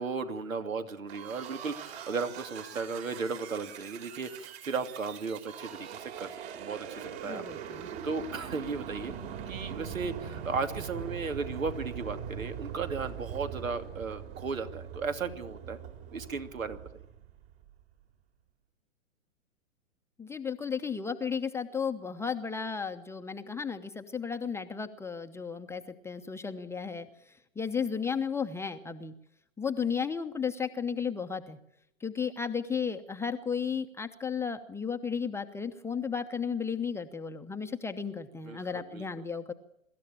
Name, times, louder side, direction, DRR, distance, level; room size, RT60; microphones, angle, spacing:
voice 1, 0.0-9.1 9.5-15.8 16.1-16.8 38.4-39.1, right 4 dB, 80° right, 8 dB, 2.8 m, -35 dB
sound 1, 1.1-17.7, right 8 dB, 50° right, 4.4 m, -42 dB
voice 2, 7.2-7.9 20.2-27.1 27.6-29.1 29.6-31.6 32.0-39.5, left 6 dB, 5° left, 6 dB, 0.9 m, -34 dB
24.5 x 13.5 x 8.8 m, 0.79 s
hypercardioid pair, 120°, 40 cm